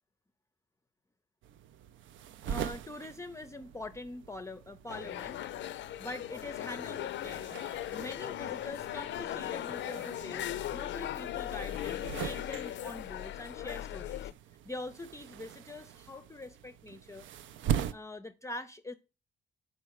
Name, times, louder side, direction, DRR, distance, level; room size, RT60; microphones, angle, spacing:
sound 1, 1.4-17.9, right 9 dB, 75° right, 0.5 m, -42 dB
voice 1, 2.4-5.4 6.0-7.5 7.9-14.3 14.6-17.3 17.9-18.9, left 2 dB, 15° left, 0.5 m, -44 dB
sound 2, 4.9-14.3, left 12 dB, 65° left, 0.4 m, -38 dB
6.2 x 4.5 x 4.7 m
cardioid pair, 90°, 20 cm